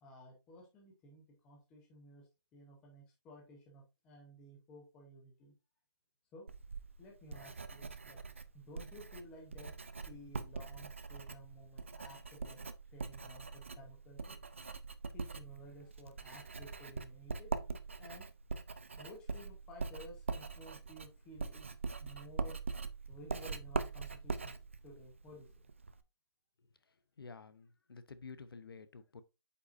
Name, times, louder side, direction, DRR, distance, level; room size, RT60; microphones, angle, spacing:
voice 1, 0.0-5.5 6.3-6.5 7.0-8.2 8.5-9.7 10.1-14.4 15.1-17.5 18.0-18.3 19.0-22.6 23.1-24.6 24.8-25.5, equal, 5° left, 0.7 m, -55 dB
Writing, 6.5-26.0, right 4 dB, 30° right, 0.4 m, -43 dB
voice 2, 27.2-29.2, left 4 dB, 60° left, 0.8 m, -51 dB
8.3 x 5.5 x 2.5 m
hypercardioid pair, 175°, 14 cm